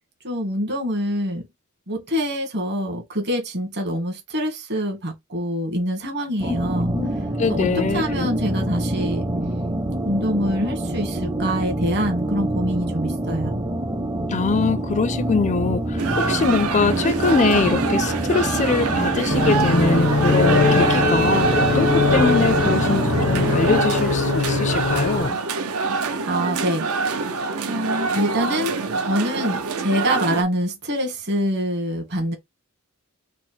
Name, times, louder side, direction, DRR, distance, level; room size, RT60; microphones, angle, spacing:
voice 1, 0.2-1.4 1.9-6.9 7.5-9.2 10.0-13.6 26.2-26.9 27.6-32.4, equal, 50° right, 1.4 m, -25 dB
sound 1, 6.4-23.8, right 1 dB, 20° right, 0.6 m, -26 dB
voice 2, 7.4-8.3 14.3-25.4, left 4 dB, 35° left, 0.4 m, -23 dB
sound 2, 16.0-30.4, right 4 dB, 80° right, 0.6 m, -25 dB
sound 3, 19.3-25.3, left 4 dB, 85° left, 0.8 m, -22 dB
4.2 x 2.0 x 4.3 m
head